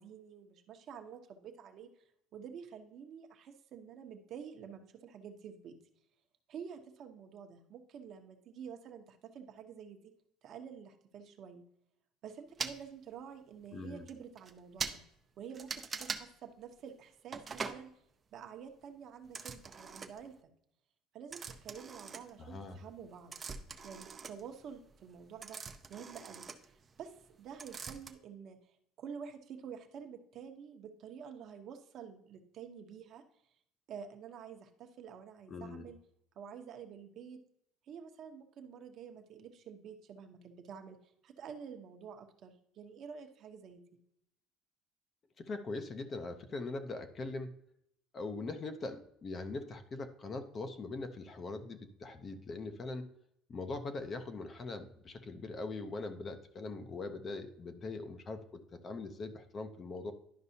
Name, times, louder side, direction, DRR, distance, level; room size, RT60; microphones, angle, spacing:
voice 1, 0.0-1.9 2.3-5.8 6.5-10.1 10.4-11.6 12.2-15.0 15.4-17.9 18.3-20.5 21.1-23.4 23.8-25.6 25.9-26.5 27.0-28.6 29.0-33.2 33.9-36.0 36.4-37.4 37.9-43.8, right 7 dB, 45° right, 6 dB, 0.9 m, -49 dB
sound 1, 12.6-12.8 13.6-13.7 14.1-14.2 14.4-14.5 14.8-15.0 15.5-16.2 17.3-17.8 19.3-20.3 21.3-22.7 23.0-27.3 27.6-28.1, right 5 dB, 25° right, 0.5 m, -42 dB
voice 2, 13.7-14.1 22.4-22.8 35.5-35.9 45.4-47.5 48.1-53.1 53.5-60.1, left 3 dB, 30° left, 8 dB, 0.6 m, -41 dB
11.0 x 5.4 x 2.7 m, 0.72 s
cardioid pair, 145°, 0 cm